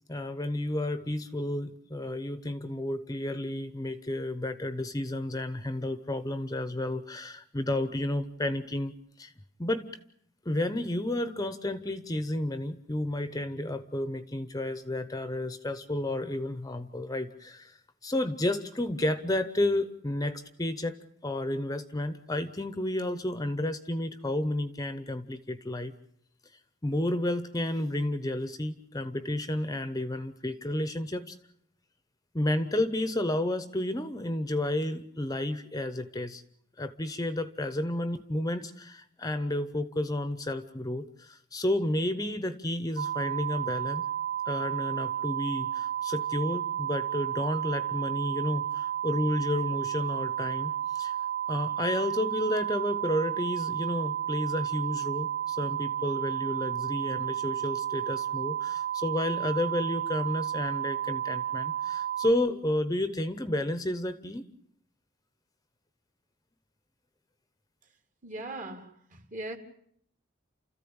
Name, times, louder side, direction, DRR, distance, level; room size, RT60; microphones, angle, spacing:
voice 1, 0.1-9.3 9.6-9.9 10.4-25.9 26.8-31.4 32.3-36.4 36.8-44.1 44.5-51.2 51.5-64.4, left 1 dB, 20° left, 0.9 m, -31 dB
sound 1, 43.0-62.3, right 10 dB, 80° right, 1.1 m, -32 dB
voice 2, 68.2-69.6, right 2 dB, 40° right, 2.6 m, -39 dB
29.5 x 14.5 x 8.8 m
head